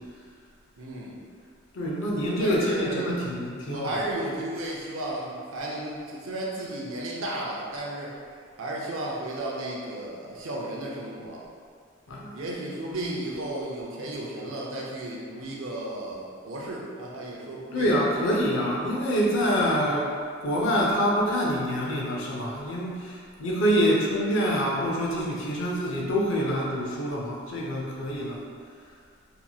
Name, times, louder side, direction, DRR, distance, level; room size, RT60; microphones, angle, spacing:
voice 1, 0.8-1.2 2.4-3.1 3.6-8.1 8.6-11.4 12.3-17.9 19.8-20.0, right 1 dB, 75° right, -4 dB, 0.5 m, -34 dB
voice 2, 1.7-4.0 12.1-12.3 13.0-13.1 17.7-20.0 20.4-28.4, equal, 70° left, -3 dB, 0.5 m, -26 dB
2.9 x 2.6 x 2.3 m, 2.1 s
head